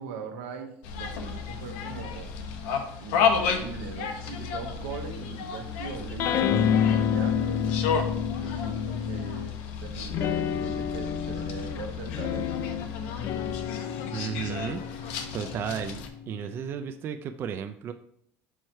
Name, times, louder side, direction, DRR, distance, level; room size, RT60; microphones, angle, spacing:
voice 1, 0.0-2.3 3.0-7.6 8.3-12.7, right 5 dB, 90° right, 4 dB, 1.0 m, -40 dB
sound 1, 0.8-16.1, left 6 dB, 80° left, 0.9 m, -32 dB
sound 2, 6.2-9.6 10.1-16.9, left 8 dB, 45° left, 0.3 m, -29 dB
voice 2, 14.1-14.8 15.3-17.9, right 8 dB, 35° right, 8 dB, 0.3 m, -33 dB
4.6 x 4.5 x 4.5 m, 0.71 s
cardioid pair, 135°, 6 cm